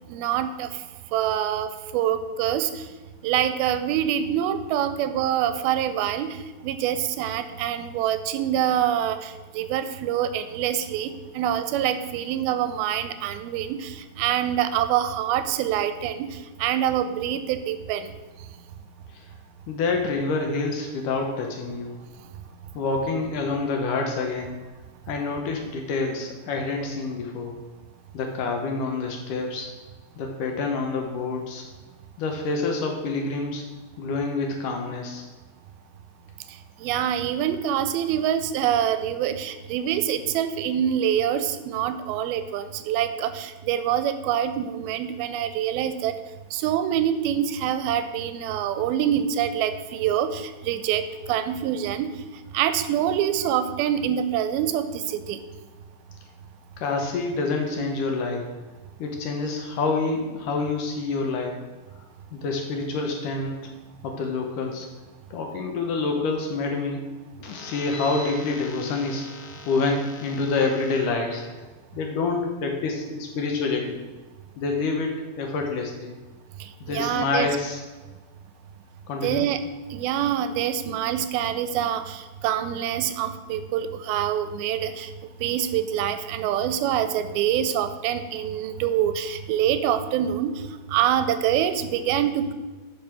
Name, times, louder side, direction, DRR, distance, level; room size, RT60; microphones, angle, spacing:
voice 1, 0.1-0.7 1.1-2.8 3.2-6.4 6.6-16.3 16.6-18.1 36.8-46.1 46.5-52.1 52.5-55.4 76.6-77.5 79.2-79.6 79.9-85.1 85.4-90.6 90.9-92.5, right 10 dB, 85° right, 10 dB, 2.4 m, -25 dB
voice 2, 19.7-22.0 22.7-24.5 25.1-27.6 28.1-29.7 30.2-31.6 32.2-33.6 34.0-35.2 56.8-58.5 59.0-61.6 62.3-63.7 64.0-64.9 65.3-67.0 67.4-71.6 71.9-74.0 74.6-76.1 76.8-77.8 79.1-79.5, left 3 dB, 70° left, 2 dB, 2.3 m, -27 dB
10.5 x 5.4 x 6.1 m, 1.3 s
omnidirectional pair, 4.4 m